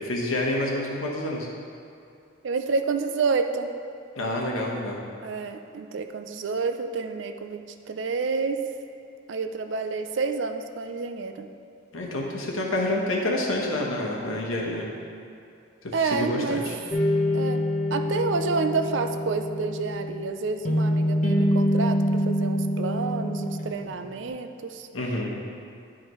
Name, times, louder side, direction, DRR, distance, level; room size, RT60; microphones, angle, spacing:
voice 1, 0.0-1.5 4.2-5.0 11.9-14.9 16.0-16.7 24.9-25.3, left 1 dB, 85° left, -2 dB, 1.2 m, -28 dB
voice 2, 2.4-3.7 5.2-8.6 9.3-11.5 15.9-16.6 17.3-17.6 17.9-24.9, right 4 dB, 65° right, 7 dB, 0.4 m, -29 dB
sound 1, 16.9-24.3, equal, 35° left, 0.8 m, -26 dB
11.0 x 5.0 x 3.1 m, 2.5 s
head